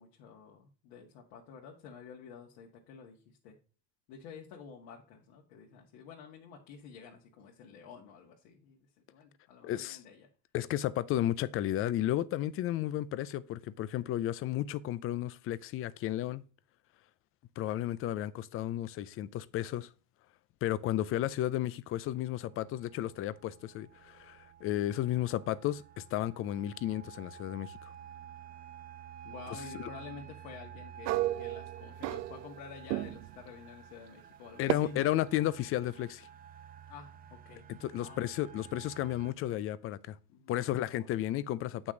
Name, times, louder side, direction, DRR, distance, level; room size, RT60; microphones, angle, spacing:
voice 1, 0.0-3.6 4.1-10.3 29.2-35.2 36.9-37.7 38.0-38.2 40.3-40.6 41.0-41.1, left 6 dB, 60° left, 2.0 m, -50 dB
voice 2, 9.6-10.0 10.5-16.4 17.6-19.9 20.6-27.9 29.7-29.9 34.6-36.3 37.8-40.2 40.5-41.9, left 13 dB, 30° left, 0.4 m, -33 dB
sound 1, 22.2-39.3, right 9 dB, 20° right, 0.6 m, -51 dB
sound 2, 31.0-32.6 32.9-33.4 34.7-34.8, right 17 dB, 85° right, 0.7 m, -32 dB
7.8 x 6.1 x 3.8 m
supercardioid pair, 120°, 49 cm